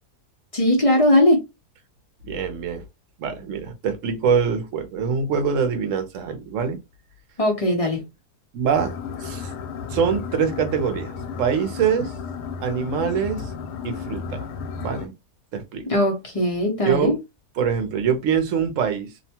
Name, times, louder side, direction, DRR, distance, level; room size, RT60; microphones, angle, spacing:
voice 1, 0.5-1.4 7.4-8.0 15.9-17.2, left 1 dB, 45° left, 0.4 m, -19 dB
voice 2, 2.3-2.8 3.2-6.8 8.5-8.9 9.2-9.5 9.9-11.1 11.4-12.1 12.6-13.5 13.8-14.4 14.8-15.1 15.5-15.8 16.9-17.1 17.6-19.1, right 7 dB, 65° right, 0.9 m, -24 dB
sound 1, 8.7-15.1, left 6 dB, 80° left, 1.2 m, -33 dB
2.8 x 2.2 x 2.8 m
omnidirectional pair, 1.7 m